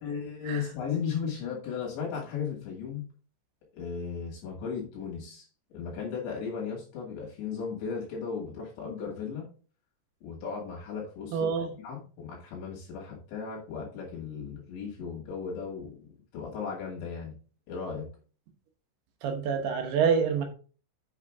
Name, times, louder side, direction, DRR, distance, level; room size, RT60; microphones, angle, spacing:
voice 1, 0.0-3.0 3.7-9.5 10.2-11.5 11.8-17.3 17.7-18.1, left 6 dB, 65° left, -2 dB, 4.2 m, -36 dB
voice 2, 11.3-11.7 19.2-20.4, right 6 dB, 70° right, 5 dB, 2.8 m, -26 dB
8.2 x 6.5 x 3.6 m, 0.38 s
omnidirectional pair, 5.7 m